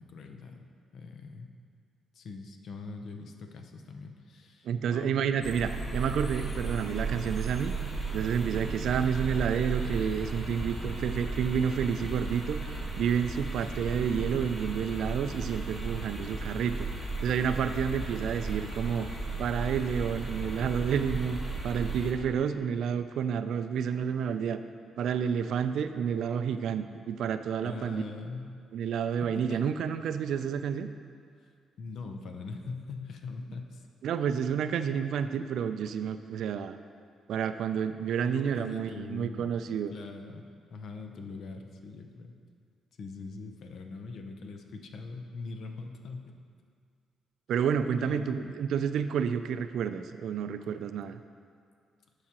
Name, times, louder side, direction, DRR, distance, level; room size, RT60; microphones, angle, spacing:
voice 1, 0.0-1.5 2.1-5.4 13.6-13.7 14.2-14.4 27.6-28.6 29.2-29.7 31.8-33.8 38.2-39.5 39.9-40.4 40.7-42.4 43.0-46.3 48.0-48.5, left 4 dB, 65° left, 5 dB, 0.7 m, -42 dB
voice 2, 4.6-7.7 8.1-12.6 13.0-16.9 17.2-19.1 19.4-21.4 21.6-24.6 25.0-28.0 28.7-30.9 34.0-36.8 37.3-39.9 47.5-51.2, right 7 dB, 75° right, 10 dB, 0.3 m, -30 dB
sound 1, 5.4-22.1, right 3 dB, 15° left, 1.3 m, -35 dB
12.0 x 4.8 x 2.9 m, 2.2 s
cardioid pair, 90°, 0 cm